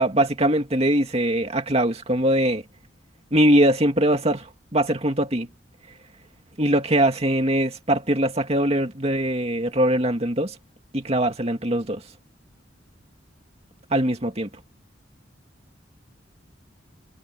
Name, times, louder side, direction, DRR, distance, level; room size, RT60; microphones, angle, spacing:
voice 1, 0.0-2.6 3.3-5.5 6.6-10.6 10.9-12.0 13.9-14.5, right 1 dB, 35° right, 2.3 m, -22 dB
head